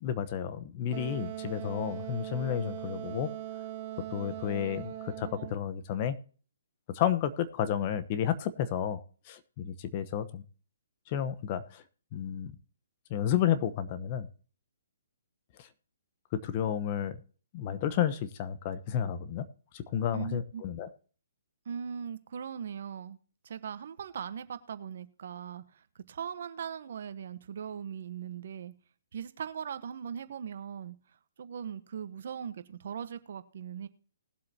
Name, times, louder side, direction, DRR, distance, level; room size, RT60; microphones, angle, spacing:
voice 1, 0.0-3.3 4.1-6.2 6.9-10.4 11.1-11.8 12.1-12.5 13.1-14.3 15.6-15.7 16.4-17.2 17.5-19.5 19.7-20.9, left 9 dB, 35° left, 12 dB, 1.0 m, -31 dB
Wind instrument woodwind instrument, 0.9-5.6, right 12 dB, 35° right, 1.6 m, -40 dB
voice 2, 20.1-20.6 21.6-23.2 23.4-28.7 29.1-31.0 31.4-33.9, right 8 dB, 60° right, 12 dB, 1.1 m, -39 dB
20.0 x 7.7 x 2.8 m, 0.40 s
hypercardioid pair, 145°, 0 cm